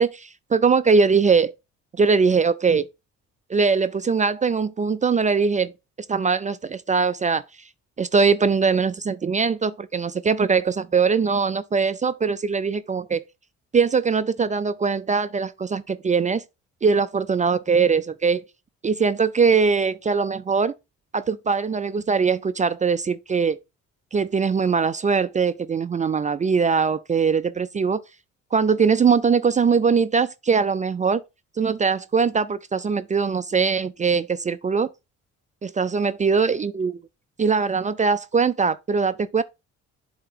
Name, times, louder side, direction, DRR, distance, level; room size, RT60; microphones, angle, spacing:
voice 1, 0.0-1.5 2.0-2.9 3.5-5.7 6.1-7.4 8.0-13.2 13.7-16.4 16.8-18.4 18.8-20.7 21.1-23.6 24.1-28.0 28.5-31.2 31.6-34.9 35.6-37.0 37.4-39.4, right 5 dB, 25° right, 0.4 m, -21 dB
7.5 x 2.9 x 4.8 m
cardioid pair, 90°, 30 cm